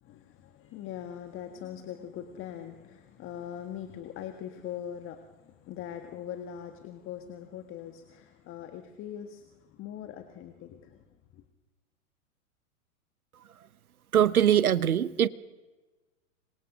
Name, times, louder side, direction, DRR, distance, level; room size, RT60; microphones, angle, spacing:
voice 1, 0.0-11.1 11.3-11.4, left 10 dB, 30° left, 1.6 m, -41 dB
voice 2, 14.1-15.3, right 10 dB, 80° right, 1.0 m, -22 dB
26.5 x 24.0 x 6.3 m
figure-of-eight pair, 105°, 43 cm